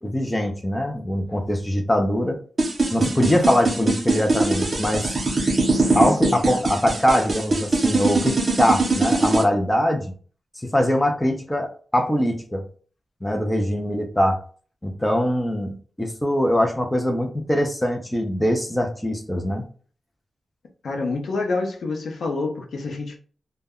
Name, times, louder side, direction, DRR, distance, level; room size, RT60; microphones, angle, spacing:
voice 1, 0.0-2.4 2.9-5.2 5.9-10.1 10.6-12.6 13.2-14.4 14.8-19.6, equal, 10° left, 0.4 m, -22 dB
sound 1, 2.6-9.4, right 3 dB, 35° right, 0.6 m, -21 dB
voice 2, 20.8-23.2, left 3 dB, 75° left, 0.6 m, -27 dB
2.1 x 2.1 x 3.5 m
wide cardioid pair, 145°, 0 cm